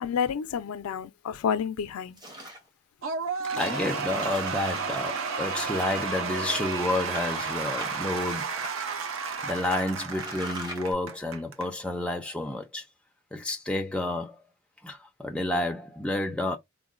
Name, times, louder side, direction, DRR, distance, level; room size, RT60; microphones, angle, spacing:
voice 1, 0.0-2.2, left 7 dB, 85° left, 0.4 m, -29 dB
sound 1, 2.2-2.7 3.2-3.3 3.6-3.8 4.1-4.9 5.6-6.4 7.1-8.7 9.0-9.1 9.6-9.7 10.0-10.9, equal, 20° right, 0.8 m, -41 dB
Cheering / Applause / Crowd, 3.0-11.7, right 5 dB, 70° right, 0.5 m, -32 dB
voice 2, 3.5-8.5 9.4-12.9 13.3-14.4 14.8-16.6, left 1 dB, 5° left, 0.3 m, -30 dB
3.7 x 2.1 x 2.4 m
head